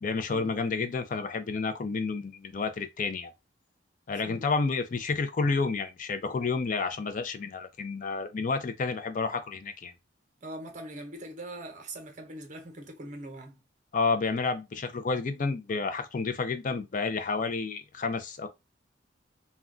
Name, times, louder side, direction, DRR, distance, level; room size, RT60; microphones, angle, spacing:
voice 1, 0.0-3.3 4.1-9.9 13.9-18.5, left 4 dB, 45° left, 0.4 m, -30 dB
voice 2, 4.1-4.5 10.4-13.6, right 1 dB, 45° right, 0.8 m, -42 dB
2.3 x 2.2 x 3.6 m
head